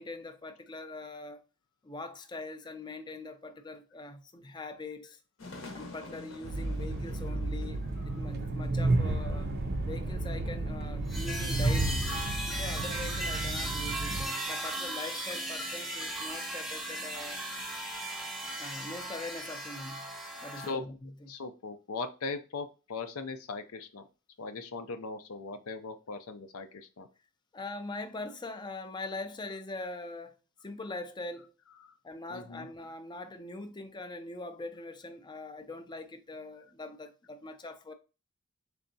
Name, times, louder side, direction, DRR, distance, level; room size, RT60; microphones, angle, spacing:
voice 1, 0.0-1.4 1.8-5.2 5.7-9.5 9.9-12.1 12.6-17.4 18.6-20.1 20.4-21.1 27.5-30.4 30.6-31.5 32.0-37.9, left 2 dB, 20° left, 0.4 m, -42 dB
sound 1, 5.4-13.0, left 2 dB, 65° left, 0.9 m, -48 dB
Train, 6.4-14.3, right 2 dB, 50° right, 0.4 m, -32 dB
sound 2, 11.1-20.7, right 1 dB, ahead, 0.9 m, -37 dB
voice 2, 21.3-24.0 24.4-27.1 31.8-31.9 32.3-32.7, left 4 dB, 85° left, 0.5 m, -39 dB
3.8 x 3.4 x 2.6 m
head